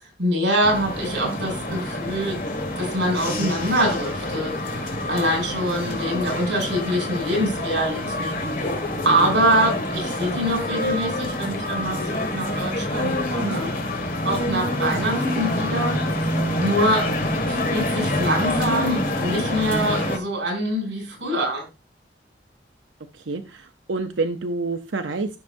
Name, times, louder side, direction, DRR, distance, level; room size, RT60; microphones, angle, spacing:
voice 1, 0.2-2.4 2.7-8.6 9.0-13.7 14.2-16.0 16.6-17.1 17.4-21.6, right 1 dB, 70° right, 1 dB, 6.5 m, -24 dB
sound 1, 0.6-20.2, left 1 dB, 45° left, 2.0 m, -26 dB
voice 2, 23.1-25.3, right 3 dB, 85° right, 6 dB, 0.7 m, -28 dB
15.5 x 6.3 x 2.6 m, 0.28 s
head